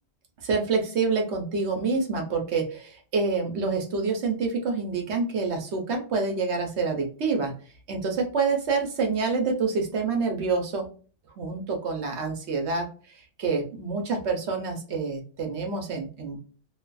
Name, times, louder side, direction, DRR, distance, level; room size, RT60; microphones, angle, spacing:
voice 1, 0.4-7.5 7.9-10.9 11.4-16.4, right 4 dB, 60° right, 3 dB, 0.9 m, -27 dB
2.5 x 2.4 x 2.2 m, 0.39 s
omnidirectional pair, 1.4 m